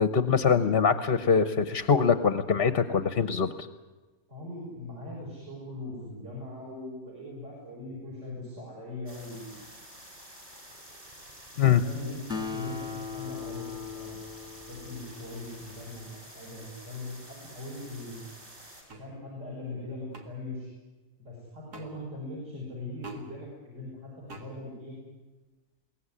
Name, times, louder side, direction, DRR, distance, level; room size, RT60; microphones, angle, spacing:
voice 1, 0.0-3.7 11.6-11.8, left 6 dB, 45° left, 12 dB, 0.9 m, -23 dB
voice 2, 4.3-9.6 11.5-14.2 14.7-18.2 19.0-20.7 21.2-24.9, left 2 dB, 50° right, -4 dB, 6.5 m, -40 dB
sound 1, 9.1-18.8, right 1 dB, 25° right, 6.2 m, -49 dB
Acoustic guitar, 12.3-16.0, left 6 dB, 5° right, 1.7 m, -39 dB
sound 2, 18.9-19.1 20.1-20.3 21.7-21.9 23.0-23.2 24.3-24.5, right 2 dB, 80° right, 2.7 m, -45 dB
22.5 x 17.5 x 9.8 m, 1.2 s
omnidirectional pair, 1.7 m